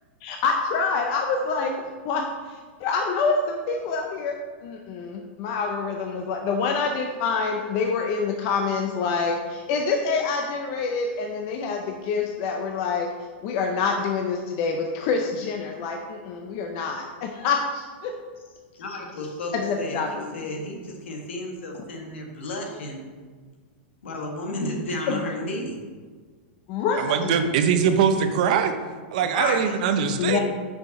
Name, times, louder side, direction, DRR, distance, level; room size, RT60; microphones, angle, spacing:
voice 1, 0.2-13.1 13.4-18.2 19.5-20.5 25.1-25.2 26.7-27.3 30.2-30.4, left 4 dB, 30° left, 3 dB, 0.4 m, -26 dB
voice 2, 18.8-23.1 24.0-25.8 29.3-29.7, left 2 dB, 85° left, 2 dB, 1.6 m, -32 dB
voice 3, 27.0-28.7 29.1-30.4, right 7 dB, 40° right, 8 dB, 0.5 m, -22 dB
5.6 x 5.5 x 5.2 m, 1.5 s
supercardioid pair, 180°, 6 cm